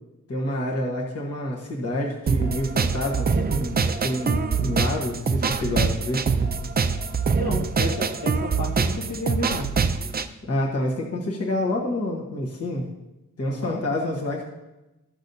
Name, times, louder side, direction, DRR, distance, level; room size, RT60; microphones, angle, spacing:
voice 1, 0.3-6.2 10.4-12.8 13.4-14.4, left 1 dB, 50° left, -2 dB, 1.3 m, -28 dB
sound 1, 2.3-10.3, right 5 dB, 30° right, 0.4 m, -24 dB
voice 2, 7.4-9.7 13.5-13.8, left 2 dB, 70° left, -2 dB, 1.5 m, -31 dB
14.0 x 6.1 x 2.7 m, 0.99 s
wide cardioid pair, 165°, 32 cm